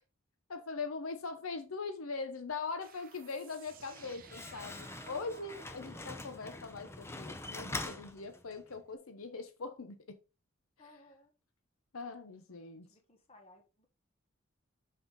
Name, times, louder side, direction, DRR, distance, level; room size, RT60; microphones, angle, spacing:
voice 1, 0.5-10.2 11.9-12.9, left 4 dB, 80° left, 0.9 m, -41 dB
sound 1, 2.8-8.1, right 7 dB, 45° right, 0.7 m, -58 dB
Slam, 3.7-8.8, left 2 dB, 10° left, 0.6 m, -44 dB
voice 2, 8.0-8.5 10.8-11.3 12.5-12.6 12.9-13.9, left 1 dB, 30° left, 1.6 m, -61 dB
6.3 x 5.6 x 3.8 m
head